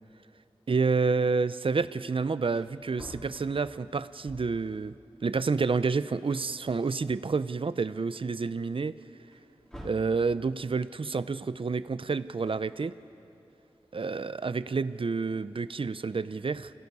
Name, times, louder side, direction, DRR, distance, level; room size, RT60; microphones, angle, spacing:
voice 1, 0.7-4.9 5.2-8.9 9.8-12.9 13.9-16.7, right 4 dB, 55° right, 14 dB, 0.6 m, -29 dB
Wood, 2.1-2.2 2.4-4.7 5.8-5.9 6.3-7.4 7.9-8.0 9.3-10.2 12.2-13.2, equal, 5° left, 4.0 m, -49 dB
29.0 x 17.0 x 5.5 m, 2.8 s
wide cardioid pair, 50°, 11 cm